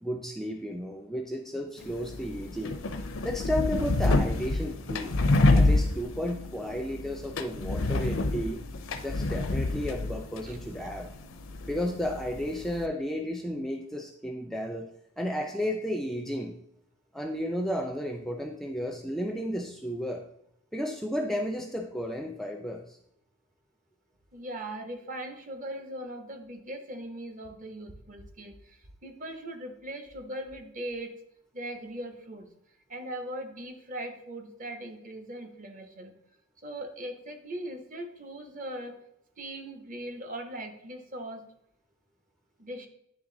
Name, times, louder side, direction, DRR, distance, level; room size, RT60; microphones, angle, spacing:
voice 1, 0.0-2.8 3.2-5.2 5.5-8.6 9.0-11.1 11.7-14.9 15.2-16.5 17.1-20.2 20.7-23.0, equal, ahead, 2 dB, 0.4 m, -33 dB
sound 1, 1.8-12.9, left 2 dB, 70° left, 0.6 m, -28 dB
voice 2, 24.3-31.1 31.5-32.5 32.9-36.1 36.6-39.0 39.4-41.5 42.6-42.9, right 1 dB, 40° right, 5 dB, 0.8 m, -39 dB
9.5 x 3.3 x 3.8 m, 0.76 s
head